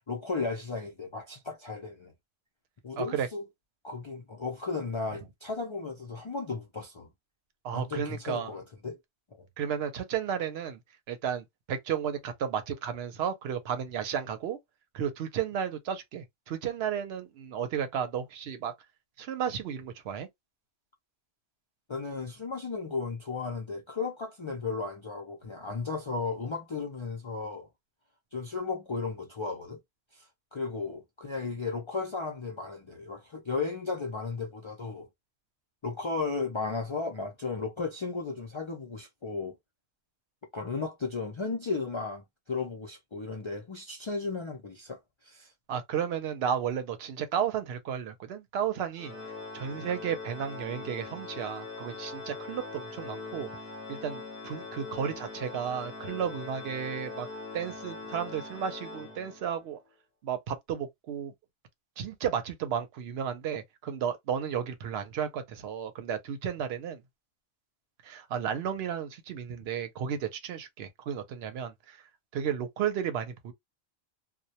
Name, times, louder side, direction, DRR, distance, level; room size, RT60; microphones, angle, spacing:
voice 1, 0.1-2.1 2.8-3.4 3.8-7.1 7.7-9.0 9.4-9.5 21.9-27.7 28.3-29.8 30.1-35.1 35.8-39.5 40.5-45.5, left 4 dB, 55° left, 0.3 m, -35 dB
voice 2, 3.0-3.3 7.6-8.5 9.6-10.8 11.1-14.6 14.9-18.7 19.2-20.3 45.7-49.1 49.5-53.5 53.9-57.3 57.5-59.8 60.2-61.3 62.0-67.0 68.0-72.0 72.3-73.5, right 8 dB, 75° right, 0.8 m, -33 dB
Organ, 49.0-59.7, left 3 dB, 15° right, 0.6 m, -42 dB
2.1 x 2.1 x 2.7 m
omnidirectional pair, 1.1 m